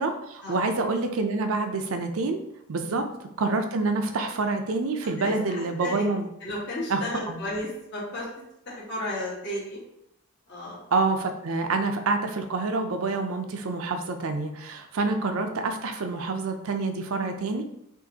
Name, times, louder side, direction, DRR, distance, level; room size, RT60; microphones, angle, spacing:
voice 1, 0.0-2.4 2.7-3.1 3.4-6.3 6.9-7.0 7.3-7.4 10.9-17.6, right 3 dB, 75° right, 6 dB, 0.5 m, -27 dB
voice 2, 5.2-6.1 6.4-8.3 8.6-9.8 10.5-10.8 14.9-15.1, left 1 dB, 50° left, -8 dB, 1.3 m, -34 dB
6.2 x 2.5 x 2.8 m, 0.80 s
head